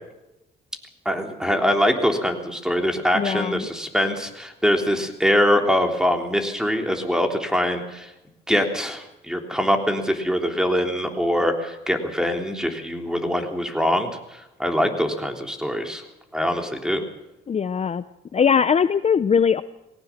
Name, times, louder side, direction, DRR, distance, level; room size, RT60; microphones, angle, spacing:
voice 1, 1.0-8.1 8.5-16.0 16.3-17.0, equal, 5° right, 4 dB, 3.4 m, -23 dB
voice 2, 3.1-3.7 17.5-18.0 18.3-19.6, left 7 dB, 35° left, 13 dB, 0.6 m, -20 dB
20.5 x 17.5 x 7.3 m, 0.94 s
cardioid pair, 90°, 20 cm